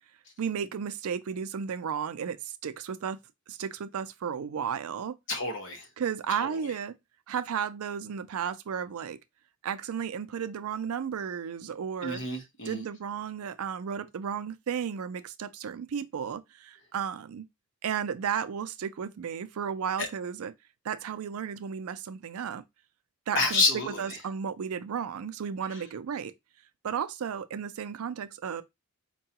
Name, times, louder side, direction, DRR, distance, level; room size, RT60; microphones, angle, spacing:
voice 1, 0.4-3.2 3.5-5.2 6.0-7.0 7.3-9.2 9.6-12.2 12.6-17.4 17.8-20.5 20.8-22.6 23.3-26.3 26.8-28.6, right 7 dB, 80° right, 0.4 m, -33 dB
voice 2, 5.3-5.9 6.4-6.5 12.0-12.8 20.0-20.1 23.3-24.0, left 3 dB, 55° left, 0.9 m, -28 dB
4.5 x 2.3 x 2.8 m
head